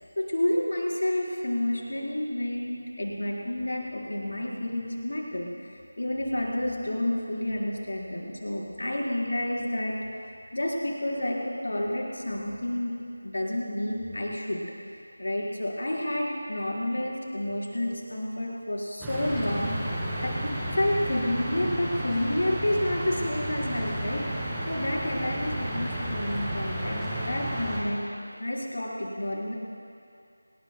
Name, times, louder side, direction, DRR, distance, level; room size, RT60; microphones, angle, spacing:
voice 1, 0.2-5.5 6.0-9.9 10.5-13.0 13.2-14.6 14.9-28.1 28.4-29.6, left 1 dB, 60° left, -3 dB, 4.8 m, -30 dB
sound 1, 19.0-27.8, right 1 dB, 5° right, 2.3 m, -32 dB
27.0 x 21.5 x 2.3 m, 2.5 s
figure-of-eight pair, 165°, 0 cm